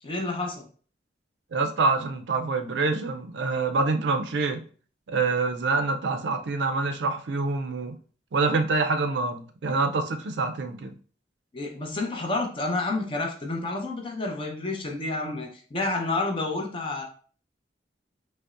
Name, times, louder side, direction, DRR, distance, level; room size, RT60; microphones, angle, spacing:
voice 1, 0.0-0.7 11.5-17.0, left 2 dB, 30° left, 1 dB, 0.6 m, -29 dB
voice 2, 1.5-4.6 5.1-8.0 8.3-10.9, right 3 dB, 70° right, 7 dB, 0.4 m, -26 dB
5.2 x 2.0 x 2.4 m, 0.42 s
head